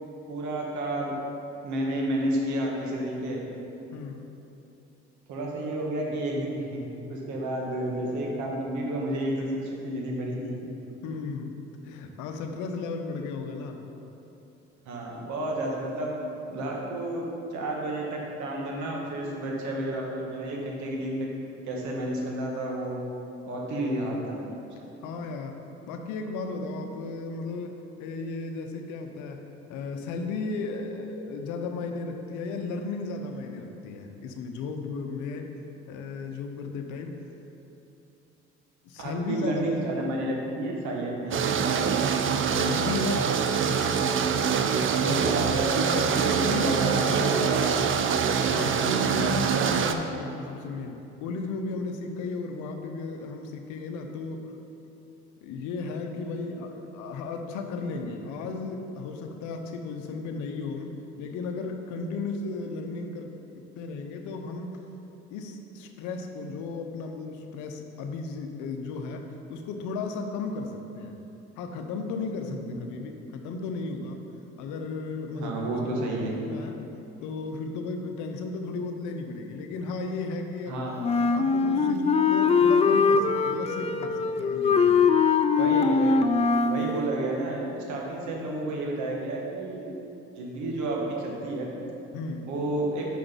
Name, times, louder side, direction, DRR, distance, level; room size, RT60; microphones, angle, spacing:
voice 1, 0.3-1.1 1.6-3.4 5.3-6.8 7.1-10.5 14.8-16.1 16.5-17.2 17.5-21.3 21.6-23.0 23.5-24.5 24.8-24.9 39.0-42.0 44.4-44.7 44.9-47.0 47.3-47.6 48.5-48.8 72.4-72.8 75.3-76.4 80.7-80.9 85.6-86.3 86.7-89.9 90.3-91.7 92.4-93.1, right 1 dB, 70° right, -2 dB, 1.4 m, -31 dB
voice 2, 3.9-4.3 11.0-11.5 11.8-13.8 25.0-25.6 25.9-29.4 29.7-35.5 35.9-37.2 38.8-39.8 42.4-43.4 45.0-46.1 46.4-46.7 47.0-47.4 48.3-54.4 55.4-60.9 61.2-64.8 65.3-69.2 69.5-71.2 71.6-74.2 74.6-76.7 77.2-80.8 81.3-85.1 92.1-92.5, left 3 dB, 75° left, 5 dB, 0.7 m, -35 dB
culvert thru manhole cover, 41.3-49.9, right 6 dB, 40° right, 0.5 m, -25 dB
Wind instrument woodwind instrument, 81.0-86.9, left 5 dB, 20° left, 0.3 m, -22 dB
5.9 x 5.1 x 5.2 m, 3.0 s
hypercardioid pair, 65°, 30 cm